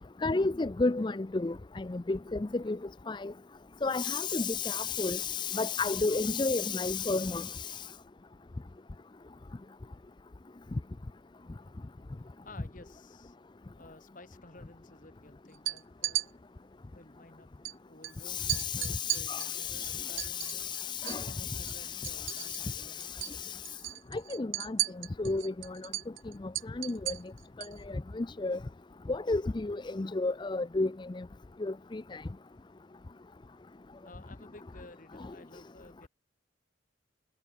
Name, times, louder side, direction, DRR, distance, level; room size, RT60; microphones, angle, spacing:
voice 1, 0.2-2.8 3.1-3.3 3.8-7.9 18.2-23.6 24.1-24.8 25.2-25.8 26.8-27.2 28.2-28.6 29.1-31.2 31.6-32.2, left 3 dB, 25° left, 0.4 m, -32 dB
voice 2, 12.4-13.4 13.8-16.3 16.8-17.5 17.8-20.7 21.3-23.3 34.0-36.1, left 2 dB, 45° left, 2.4 m, -54 dB
sound 1, 15.5-16.3 17.6-17.7 18.0-18.1 18.5-21.3 21.6-22.8 23.0-23.4 23.7-27.8, right 17 dB, 90° right, 0.7 m, -35 dB
head